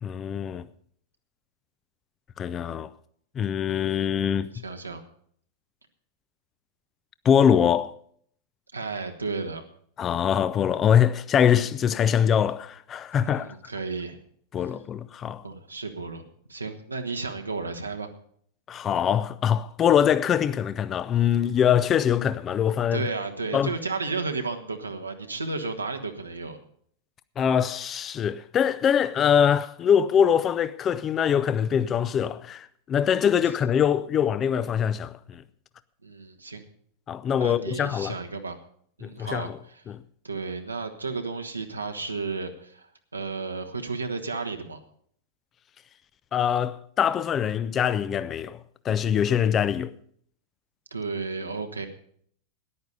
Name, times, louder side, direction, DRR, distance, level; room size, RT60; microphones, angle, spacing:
voice 1, 0.0-0.7 2.4-2.9 3.4-4.5 7.2-7.9 10.0-13.6 14.5-15.4 18.7-23.1 23.5-23.7 27.4-35.4 37.1-38.2 39.0-39.6 39.9-40.0 46.3-49.9, left 8 dB, 25° left, 0.5 m, -23 dB
voice 2, 4.5-5.0 8.7-9.6 13.2-14.2 15.4-16.2 16.5-18.1 22.9-26.6 36.0-36.6 37.4-38.6 39.0-39.8 40.2-44.8 50.9-51.9, right 4 dB, 80° right, 1.3 m, -33 dB
14.0 x 10.5 x 5.3 m
figure-of-eight pair, 90°, 0 cm